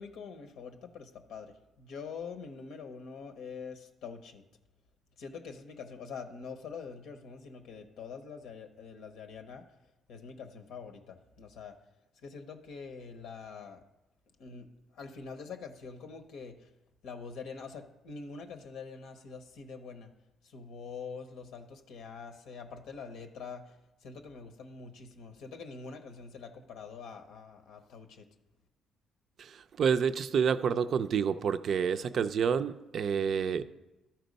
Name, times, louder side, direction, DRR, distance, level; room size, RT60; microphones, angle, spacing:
voice 1, 0.0-4.4 5.2-9.6 10.1-11.8 12.2-13.8 14.4-16.7 17.0-20.1 20.4-23.8 24.0-28.3, left 5 dB, 85° left, 7 dB, 0.7 m, -45 dB
voice 2, 29.4-33.6, right 7 dB, 60° right, 11 dB, 0.4 m, -29 dB
12.5 x 4.3 x 5.2 m, 1.0 s
cardioid pair, 90°, 0 cm